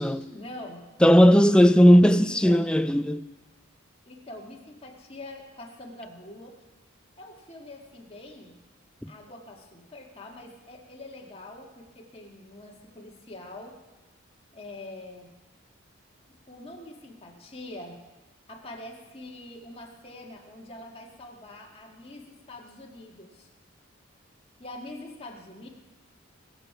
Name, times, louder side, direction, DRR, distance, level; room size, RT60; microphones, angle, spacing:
voice 1, 0.3-0.8 1.5-2.0 2.2-2.6 4.1-6.5 7.2-8.6 9.1-13.8 14.5-15.3 16.5-18.0 18.5-23.5 24.6-25.7, left 1 dB, 30° left, 1.9 m, -44 dB
voice 2, 1.0-3.3 9.0-9.1, equal, 5° left, 0.4 m, -17 dB
22.5 x 7.7 x 5.7 m
head